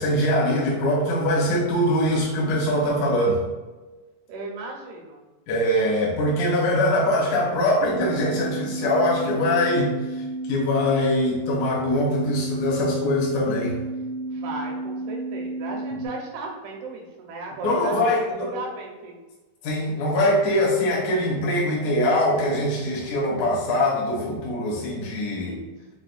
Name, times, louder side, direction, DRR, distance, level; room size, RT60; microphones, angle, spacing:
voice 1, 0.0-3.4 5.5-13.8 17.6-18.5 19.6-25.6, left 1 dB, 70° left, -5 dB, 2.6 m, -23 dB
voice 2, 4.3-5.2 14.3-18.0 18.4-19.2 25.4-25.8, right 3 dB, 85° right, 0 dB, 2.8 m, -36 dB
sound 1, 7.8-16.1, right 2 dB, 85° left, 1.5 m, -32 dB
7.0 x 2.4 x 2.4 m, 1.2 s
omnidirectional pair, 4.4 m